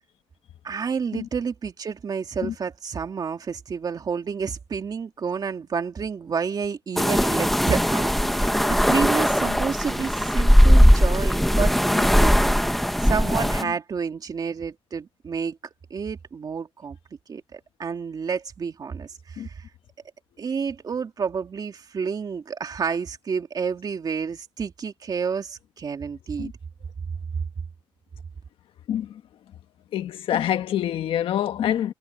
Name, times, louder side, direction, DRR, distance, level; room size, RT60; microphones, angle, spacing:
voice 1, 0.6-12.3 13.0-15.6 15.9-17.0 17.3-19.7 20.4-26.5, right 6 dB, 50° right, 2.5 m, -30 dB
sound 1, 7.0-13.6, equal, ahead, 1.0 m, -19 dB
voice 2, 28.9-29.2 29.9-31.9, left 10 dB, 90° left, 1.5 m, -26 dB
cardioid pair, 100°, 9 cm